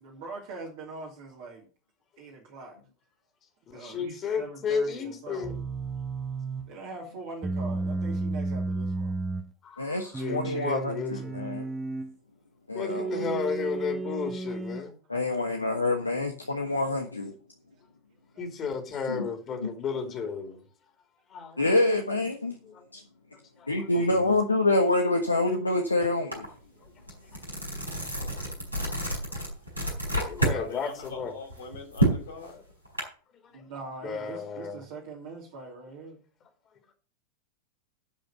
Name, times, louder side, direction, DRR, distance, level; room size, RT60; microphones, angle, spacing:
voice 1, 0.0-1.7 2.2-2.8 3.7-5.6 6.7-9.2 18.3-18.5 26.8-26.9 33.5-36.2, right 3 dB, 50° right, 2.8 m, -42 dB
voice 2, 3.7-5.6 9.6-11.4 12.7-15.0 18.4-20.6 21.3-21.8 22.6-22.8 23.6-24.3 28.0-28.1 28.4-29.4 30.2-31.3 33.5-33.6 34.0-34.8, left 5 dB, 30° left, 2.8 m, -34 dB
sound 1, 5.4-6.7 7.4-9.5 10.1-12.1 12.9-14.9, right 3 dB, 10° right, 1.0 m, -33 dB
voice 3, 9.8-11.7 12.7-13.2 15.1-17.3 19.1-19.3 19.6-19.7 21.6-22.6 22.9-23.0 23.7-26.5, left 2 dB, 80° left, 1.2 m, -26 dB
sound 2, 26.3-26.5 26.9-30.6 31.0-33.0, right 1 dB, 85° right, 4.4 m, -29 dB
voice 4, 30.5-32.6, left 4 dB, 65° left, 4.3 m, -41 dB
11.5 x 5.2 x 6.8 m
figure-of-eight pair, 90°, 0 cm